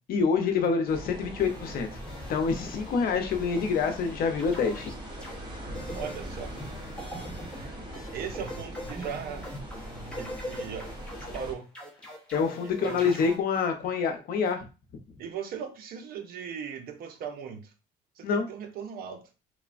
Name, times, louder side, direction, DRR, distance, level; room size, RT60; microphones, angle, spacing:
voice 1, 0.1-1.9 2.3-4.9 12.3-14.7 18.2-18.5, left 5 dB, 60° left, 0.6 m, -26 dB
sound 1, 0.9-11.5, equal, 25° right, 1.0 m, -41 dB
sound 2, 1.4-3.0 3.3-4.1 4.4-5.4 5.7-13.4, equal, 5° left, 0.7 m, -42 dB
voice 2, 5.9-6.6 8.1-9.5 10.1-10.9 11.3-11.7 12.8-13.1 15.2-17.7 18.2-19.3, right 7 dB, 65° right, 0.6 m, -38 dB
3.0 x 2.1 x 2.4 m
cardioid pair, 110°, 17 cm